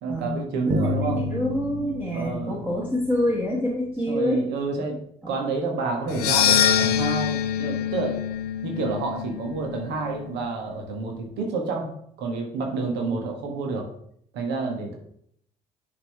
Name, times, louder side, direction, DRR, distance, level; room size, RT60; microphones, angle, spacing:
voice 1, 0.0-1.2 2.1-2.6 4.1-5.0 5.3-8.2 8.6-11.9 12.2-13.9 14.3-15.0, right 3 dB, 60° right, 2 dB, 1.5 m, -29 dB
voice 2, 0.7-4.4 5.2-5.3, left 1 dB, 10° right, -3 dB, 1.4 m, -27 dB
Bass guitar, 0.7-3.8, equal, 35° right, 1.0 m, -30 dB
sound 1, 6.1-10.4, left 9 dB, 75° left, 0.5 m, -25 dB
10.0 x 3.9 x 3.4 m, 0.67 s
figure-of-eight pair, 50°, 20 cm